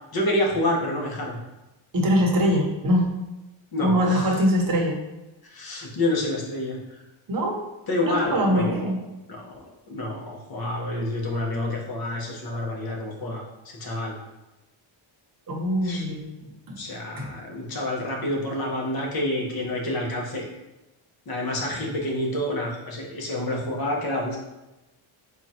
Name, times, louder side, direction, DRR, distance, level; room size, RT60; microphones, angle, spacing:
voice 1, 0.1-1.4 3.7-4.3 5.5-6.8 7.9-8.9 9.3-9.4 9.9-14.2 15.8-16.1 16.8-20.5 21.3-24.4, left 1 dB, 45° left, -1 dB, 0.9 m, -28 dB
voice 2, 1.9-3.1 3.8-5.0 7.3-7.6 8.0-9.0 15.5-16.8 17.2-17.3, equal, 40° right, 0 dB, 0.8 m, -23 dB
3.9 x 2.4 x 4.1 m, 1.0 s
wide cardioid pair, 160°, 50 cm